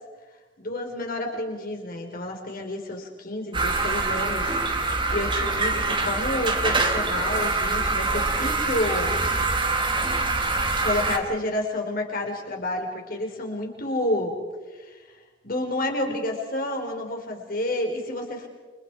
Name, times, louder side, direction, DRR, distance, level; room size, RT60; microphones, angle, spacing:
voice 1, 0.6-4.5 4.8-9.2 10.8-14.4 14.8-15.0 15.4-18.5, left 1 dB, 50° left, 2 dB, 4.5 m, -29 dB
sound 1, 3.5-11.2, right 3 dB, 25° right, 2.2 m, -24 dB
29.0 x 25.5 x 4.9 m, 1.3 s
head